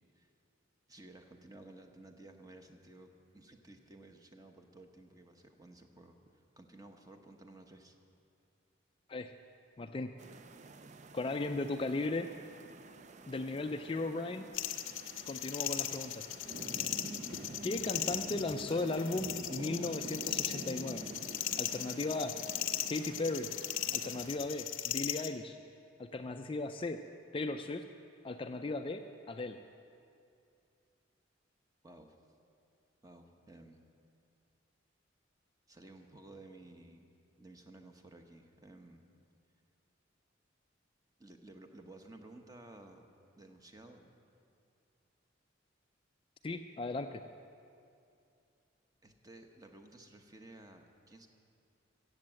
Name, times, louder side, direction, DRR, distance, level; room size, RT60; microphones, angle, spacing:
voice 1, 0.9-7.9 31.8-32.2 33.0-33.8 35.7-37.1 37.4-39.0 41.2-43.1 43.4-44.0 49.0-51.3, right 2 dB, 20° right, 5 dB, 0.9 m, -55 dB
voice 2, 9.8-10.1 11.1-12.3 13.3-14.4 15.3-16.3 17.6-21.1 21.6-22.3 22.9-23.5 23.9-25.6 26.0-27.0 27.3-27.9 28.2-29.0 29.3-29.6 46.4-47.2, left 2 dB, 25° left, 7 dB, 0.4 m, -36 dB
sound 1, 10.2-24.4, right 3 dB, 40° right, 0.5 m, -48 dB
sound 2, 14.5-25.3, left 12 dB, 85° left, 0.7 m, -38 dB
15.0 x 8.0 x 7.5 m, 2.6 s
head